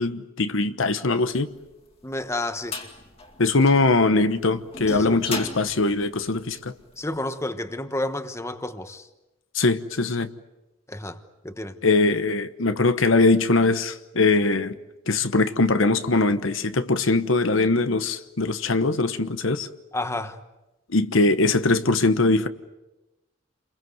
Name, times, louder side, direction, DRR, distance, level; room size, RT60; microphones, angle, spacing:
voice 1, 0.0-1.5 3.4-6.7 9.5-10.3 11.8-14.8 15.1-19.7 20.9-22.5, left 3 dB, 70° left, 1.1 m, -21 dB
sound 1, 1.6-7.0, left 3 dB, 30° left, 2.5 m, -37 dB
voice 2, 2.0-2.8 4.9-5.3 7.0-9.1 10.9-11.2 11.4-11.8 19.9-20.4, left 1 dB, 15° left, 1.2 m, -30 dB
29.5 x 22.5 x 7.9 m
head